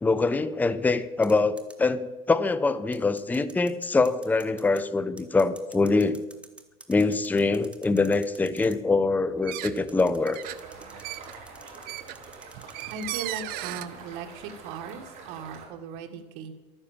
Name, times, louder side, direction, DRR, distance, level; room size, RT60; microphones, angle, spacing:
voice 1, 0.0-6.2 6.9-10.4, left 3 dB, 10° left, 13 dB, 0.6 m, -24 dB
sound 1, 1.2-1.7 2.9-4.8 5.2-8.8 9.7-13.1, right 2 dB, 5° right, 1.3 m, -49 dB
sound 2, 9.4-9.9 10.2-13.9, right 16 dB, 65° right, 0.7 m, -36 dB
sound 3, 10.4-15.7, right 4 dB, 45° right, 4.6 m, -46 dB
voice 2, 12.9-16.5, right 5 dB, 80° right, 5 dB, 1.7 m, -38 dB
12.5 x 9.8 x 7.2 m, 1.1 s
cardioid pair, 135°, 17 cm